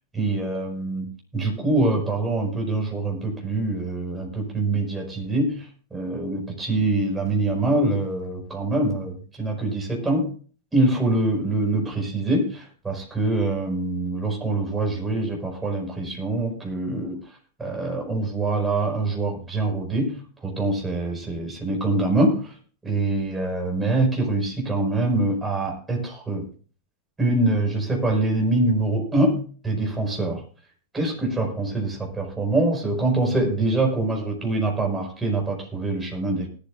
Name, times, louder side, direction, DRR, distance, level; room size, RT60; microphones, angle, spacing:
voice 1, 0.1-1.1 1.3-10.3 10.7-22.6 22.8-26.5 27.2-30.4 30.9-36.5, right 2 dB, 10° right, 0 dB, 5.4 m, -24 dB
19.5 x 12.0 x 2.5 m, 0.41 s
figure-of-eight pair, 90°, 0 cm